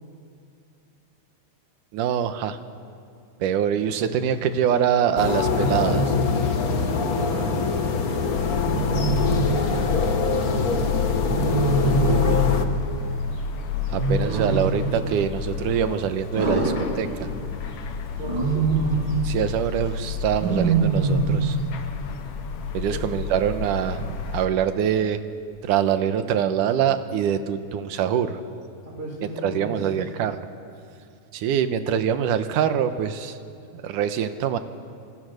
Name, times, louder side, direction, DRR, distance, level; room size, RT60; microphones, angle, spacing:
voice 1, 1.9-2.6 3.4-6.1 12.0-12.5 13.9-17.3 19.2-21.6 22.7-25.2 25.6-28.4 29.4-30.4 31.3-33.4 33.7-34.6, right 9 dB, 85° right, 10 dB, 2.6 m, -24 dB
Wild animals, 4.0-4.4 5.6-6.3 8.6-9.5 11.3-12.4 13.9-14.8 16.4-17.5 18.2-19.1 20.4-21.4, right 4 dB, 40° right, 4.1 m, -24 dB
sound 1, 5.2-12.7, left 4 dB, 55° left, 1.0 m, -24 dB
voice 2, 6.6-11.3 18.1-18.7 22.8-23.1 28.8-30.0, right 1 dB, 20° right, -3 dB, 4.0 m, -36 dB
sound 2, 8.3-24.5, left 7 dB, 90° left, 2.9 m, -30 dB
28.0 x 27.0 x 6.6 m, 2.5 s
omnidirectional pair, 3.6 m